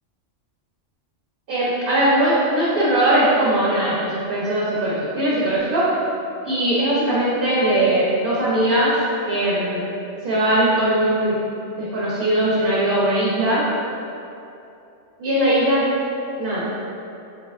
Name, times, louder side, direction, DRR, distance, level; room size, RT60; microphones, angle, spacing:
voice 1, 1.5-5.9 6.4-9.0 9.3-9.8 10.2-11.4 11.7-13.7 15.2-15.9 16.4-16.7, right 1 dB, 55° right, -8 dB, 0.7 m, -20 dB
3.3 x 3.2 x 2.3 m, 2.7 s
omnidirectional pair, 1.3 m